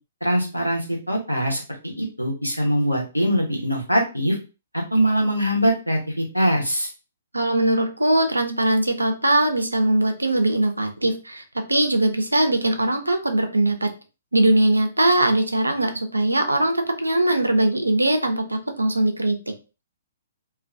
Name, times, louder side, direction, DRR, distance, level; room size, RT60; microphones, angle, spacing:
voice 1, 0.2-4.4 4.7-6.9, equal, 90° left, -1 dB, 0.8 m, -22 dB
voice 2, 7.3-11.4 11.7-13.9 14.3-19.4, right 1 dB, 80° right, 6 dB, 0.5 m, -21 dB
2.2 x 2.1 x 2.6 m, 0.31 s
figure-of-eight pair, 120°, 0 cm